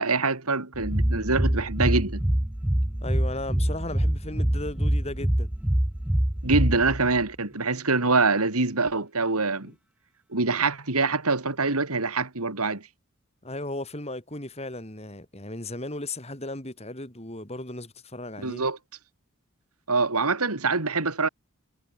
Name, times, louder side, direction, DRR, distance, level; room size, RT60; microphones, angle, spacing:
voice 1, 0.0-2.2 6.4-9.7 10.3-12.9 18.4-18.8 19.9-21.3, right 3 dB, 90° right, 2.8 m, -25 dB
sound 1, 0.7-7.2, right 1 dB, 5° right, 0.4 m, -25 dB
voice 2, 3.0-5.5 9.6-9.7 13.4-18.6, left 2 dB, 30° left, 3.6 m, -36 dB
head